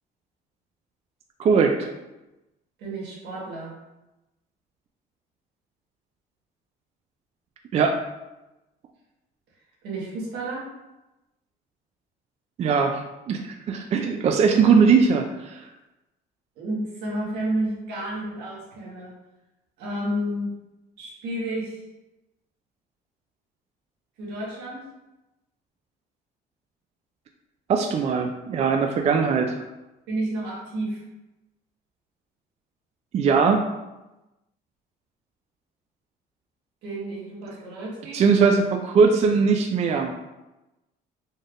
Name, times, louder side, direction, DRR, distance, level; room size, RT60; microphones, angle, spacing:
voice 1, 1.4-1.8 7.7-8.0 12.6-13.0 13.3-15.6 27.7-29.6 33.1-33.6 38.1-40.1, right 5 dB, 40° right, 4 dB, 0.4 m, -20 dB
voice 2, 2.8-3.7 9.8-10.6 14.5-14.6 16.6-19.1 19.8-20.5 21.0-21.8 24.2-24.8 30.1-31.0 36.8-38.2, right 1 dB, 85° right, -4 dB, 1.4 m, -31 dB
4.2 x 3.2 x 2.5 m, 1.0 s
cardioid pair, 110°, 17 cm